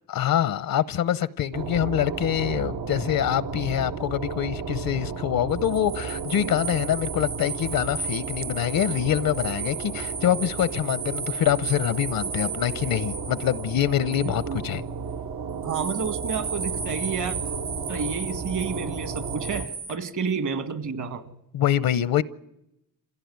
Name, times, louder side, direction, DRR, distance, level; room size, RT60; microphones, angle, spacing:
voice 1, 0.1-14.8 21.5-22.2, left 11 dB, 75° left, 0.8 m, -25 dB
sound 1, 1.5-19.7, right 5 dB, 85° right, 1.5 m, -34 dB
sound 2, 5.5-14.8 15.6-20.0, right 5 dB, 40° right, 0.8 m, -35 dB
voice 2, 14.2-14.6 15.6-17.4 17.9-21.3, right 5 dB, 60° right, 1.9 m, -30 dB
26.0 x 16.0 x 9.4 m
cardioid pair, 90°, 35 cm